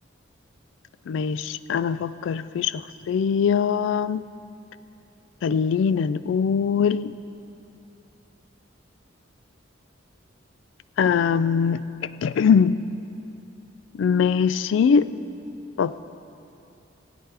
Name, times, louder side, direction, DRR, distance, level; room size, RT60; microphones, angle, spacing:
voice 1, 1.1-4.2 5.4-7.2 11.0-12.8 13.9-15.1 15.8-15.9, left 6 dB, 70° left, 15 dB, 0.3 m, -22 dB
16.5 x 8.9 x 3.4 m, 2.7 s
head